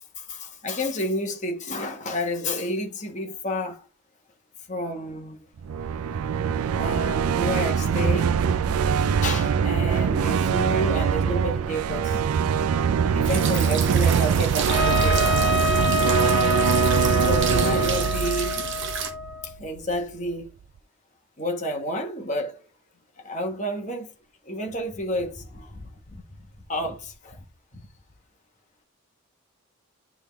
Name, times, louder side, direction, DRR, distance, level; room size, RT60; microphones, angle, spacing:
voice 1, 0.2-3.8 4.7-5.5 6.3-8.4 9.0-12.2 13.1-15.3 17.1-18.6 19.4-20.5 21.4-22.6 23.2-24.1 24.4-26.2 26.7-27.4 27.7-27.8, equal, 35° left, 1.2 m, -30 dB
sound 1, 5.6-19.6, right 6 dB, 85° right, 0.4 m, -23 dB
sound 2, 13.2-19.1, right 7 dB, 55° right, 1.0 m, -31 dB
Trumpet, 14.7-19.5, left 2 dB, 50° left, 1.7 m, -26 dB
9.7 x 3.6 x 3.4 m
head